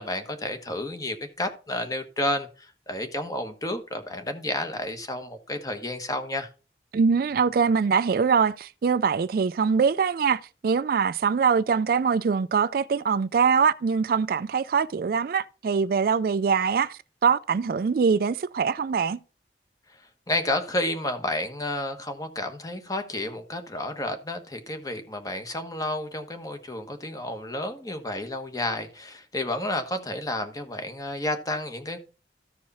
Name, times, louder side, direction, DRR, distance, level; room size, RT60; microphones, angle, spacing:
voice 1, 0.0-6.5 19.9-32.0, left 1 dB, 20° left, 1.2 m, -31 dB
voice 2, 6.9-19.2, right 6 dB, 55° right, 0.3 m, -23 dB
14.0 x 4.7 x 4.1 m
head